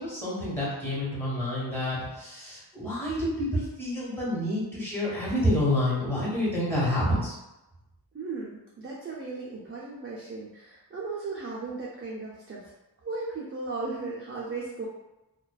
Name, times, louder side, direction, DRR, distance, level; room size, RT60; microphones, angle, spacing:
voice 1, 0.0-7.3, left 1 dB, 5° left, -7 dB, 1.3 m, -28 dB
voice 2, 8.1-12.6 13.0-14.9, right 3 dB, 35° right, -5 dB, 0.5 m, -36 dB
2.5 x 2.2 x 2.2 m, 0.97 s
wide cardioid pair, 60°, 39 cm